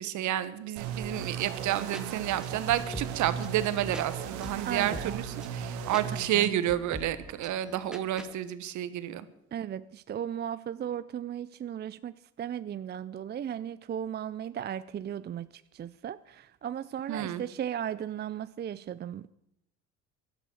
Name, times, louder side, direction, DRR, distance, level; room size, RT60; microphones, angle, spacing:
voice 1, 0.0-5.2 5.5-9.2 17.1-17.4, right 12 dB, 65° right, 13 dB, 1.4 m, -30 dB
sound 1, 0.8-6.3, right 7 dB, 90° right, 2.0 m, -37 dB
sound 2, 1.7-8.3, equal, ahead, 1.9 m, -46 dB
voice 2, 4.7-5.2 6.3-6.5 9.5-19.3, right 9 dB, 30° right, 15 dB, 0.5 m, -36 dB
17.0 x 12.0 x 6.5 m, 0.79 s
supercardioid pair, 80°, 32 cm